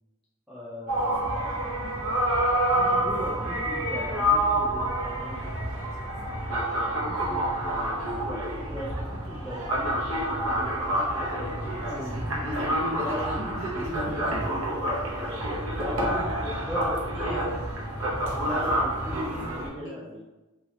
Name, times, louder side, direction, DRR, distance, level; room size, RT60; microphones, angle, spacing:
voice 1, 0.5-1.2 2.9-5.5 8.2-8.4 8.7-13.3 13.7-15.3 15.8-17.0 18.3-20.3, equal, 5° right, -8 dB, 0.3 m, -38 dB
sound 1, 0.9-19.7, right 1 dB, 80° right, 0.7 m, -28 dB
voice 2, 7.0-7.7 17.1-17.6 19.0-19.9, equal, 25° left, -5 dB, 0.8 m, -41 dB
3.1 x 2.3 x 2.8 m, 1.1 s
head